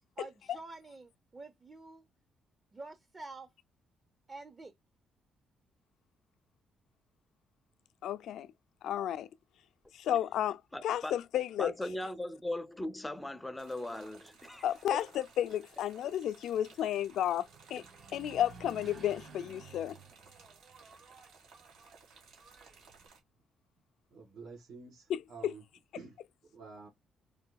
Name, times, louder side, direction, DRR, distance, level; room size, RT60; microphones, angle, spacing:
voice 1, 0.2-2.1 2.7-3.5 4.3-4.7, right 3 dB, 30° right, 0.7 m, -48 dB
voice 2, 8.0-8.5 8.8-9.3 9.9-10.6 10.8-11.7 14.6-15.0 15.4-17.8 18.1-20.0 25.1-25.5, left 11 dB, 80° left, 0.4 m, -32 dB
voice 3, 10.7-11.1 11.6-15.1, left 1 dB, 10° left, 0.5 m, -39 dB
sound 1, 13.6-23.2, right 5 dB, 85° right, 2.2 m, -59 dB
Engine, 14.2-23.1, right 5 dB, 50° right, 1.2 m, -56 dB
voice 4, 24.1-25.6 26.0-26.2 26.5-26.9, right 4 dB, 70° right, 2.0 m, -49 dB
4.8 x 2.6 x 2.2 m
cardioid pair, 90°, 0 cm